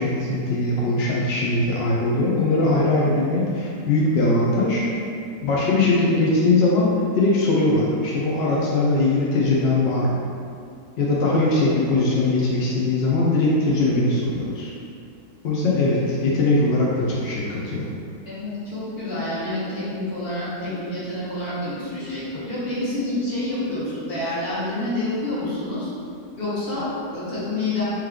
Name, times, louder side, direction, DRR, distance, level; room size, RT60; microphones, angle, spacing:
voice 1, 0.0-4.8 5.4-6.9 7.2-10.2 11.0-14.7 15.4-17.8, left 2 dB, 70° left, -5 dB, 0.6 m, -21 dB
voice 2, 18.3-25.9 26.4-27.8, left 2 dB, 40° left, -10 dB, 1.3 m, -28 dB
3.1 x 3.1 x 3.6 m, 2.4 s
omnidirectional pair, 1.7 m